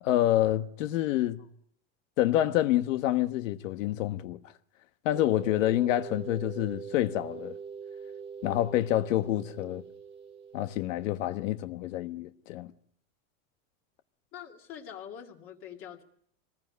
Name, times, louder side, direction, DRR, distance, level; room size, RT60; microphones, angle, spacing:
voice 1, 0.0-1.4 2.2-4.4 5.0-7.5 8.4-9.8 10.5-12.7, left 14 dB, 65° left, 1.4 m, -27 dB
sound 1, 5.1-11.7, right 6 dB, 15° right, 1.4 m, -43 dB
voice 2, 14.3-16.0, left 9 dB, 30° left, 2.3 m, -44 dB
26.5 x 20.5 x 9.5 m
supercardioid pair, 180°, 41 cm